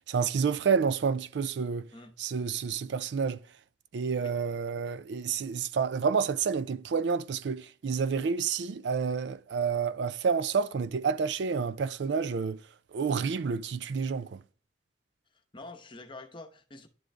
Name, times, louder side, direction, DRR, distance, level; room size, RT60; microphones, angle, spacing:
voice 1, 0.1-1.9 2.2-3.4 3.9-12.6 12.9-14.4, right 5 dB, 75° right, 0.4 m, -29 dB
voice 2, 15.5-16.9, left 2 dB, 30° left, 0.8 m, -46 dB
11.0 x 3.8 x 3.3 m
head